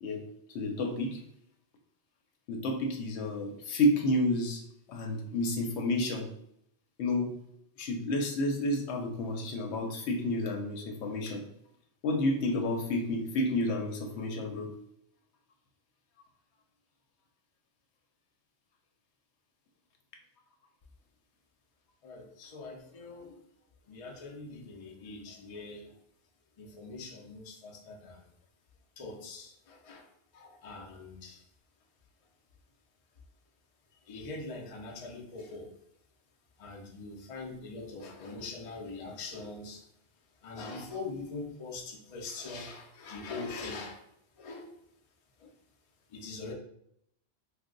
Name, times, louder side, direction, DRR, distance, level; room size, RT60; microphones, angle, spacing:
voice 1, 0.5-1.2 2.5-4.6 4.9-6.3 7.0-7.3 7.8-11.4 12.0-14.7, left 1 dB, 85° left, 3 dB, 0.9 m, -30 dB
voice 2, 22.0-23.3 23.9-25.9 26.6-28.2 29.0-30.1 30.3-31.4 34.1-35.7 36.6-39.8 40.4-44.0 44.4-44.7 45.4-45.5 46.1-46.5, left 3 dB, 45° left, 0 dB, 0.5 m, -42 dB
2.7 x 2.2 x 3.7 m, 0.73 s
omnidirectional pair, 1.1 m